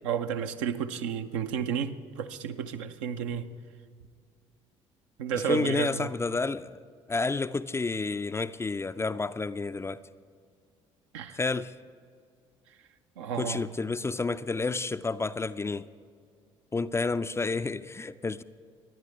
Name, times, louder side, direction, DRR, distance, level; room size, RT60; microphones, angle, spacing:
voice 1, 0.0-3.5 5.2-6.1 11.1-11.4 13.2-13.7, right 8 dB, 70° right, 0.6 m, -32 dB
voice 2, 5.3-6.8 7.1-10.0 11.3-11.8 13.3-15.9 16.7-18.4, left 3 dB, 15° left, 0.4 m, -30 dB
25.5 x 10.5 x 3.3 m
figure-of-eight pair, 50°, 16 cm